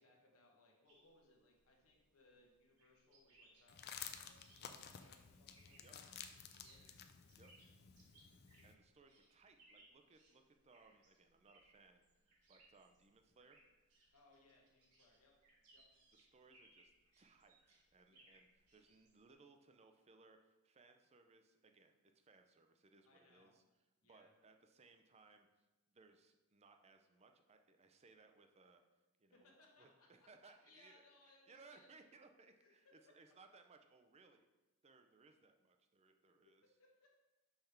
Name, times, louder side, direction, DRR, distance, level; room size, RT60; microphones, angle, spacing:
voice 1, 0.0-6.1 6.6-6.8 8.9-9.0 14.1-15.3 15.7-15.9 18.1-18.2 23.0-23.5 24.0-24.3 29.3-31.9 32.6-33.1 36.4-37.1, left 2 dB, 70° left, -1 dB, 1.2 m, -70 dB
sound 1, 0.9-19.3, right 2 dB, 85° right, 1.7 m, -71 dB
sound 2, 3.7-8.7, left 8 dB, 45° left, 0.4 m, -54 dB
voice 2, 8.6-13.7 16.1-23.6 24.0-25.5 25.9-28.8 29.2-29.5 29.8-31.0 31.5-34.5 34.8-36.6, right 4 dB, 30° right, 6 dB, 0.5 m, -66 dB
5.6 x 3.4 x 5.7 m, 1.1 s
head